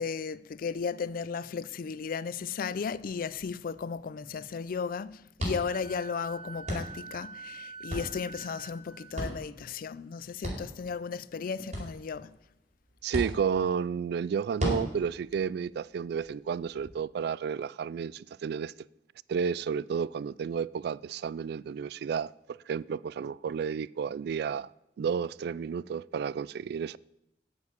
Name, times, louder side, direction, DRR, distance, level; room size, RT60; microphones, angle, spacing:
voice 1, 0.0-12.3, left 5 dB, 55° left, 0.4 m, -35 dB
sound 1, 2.8-16.9, equal, 45° right, 4.5 m, -40 dB
Wind instrument woodwind instrument, 5.6-9.2, right 4 dB, 25° right, 1.8 m, -46 dB
voice 2, 13.0-18.7 19.3-24.7 25.0-27.0, right 6 dB, 65° right, 0.3 m, -32 dB
9.5 x 7.3 x 8.1 m
head